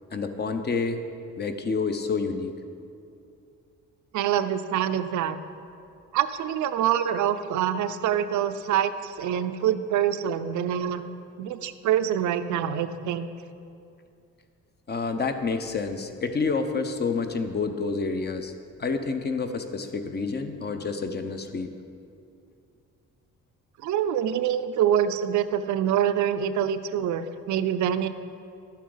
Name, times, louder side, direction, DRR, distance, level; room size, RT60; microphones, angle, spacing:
voice 1, 0.1-1.0 1.4-2.5 14.9-18.5 18.8-21.7, left 4 dB, 35° left, 7 dB, 0.8 m, -28 dB
voice 2, 4.1-5.4 6.1-11.0 11.4-13.3 23.8-28.1, right 9 dB, 75° right, 11 dB, 0.6 m, -25 dB
11.5 x 8.3 x 3.9 m, 2.5 s
cardioid pair, 90°, 30 cm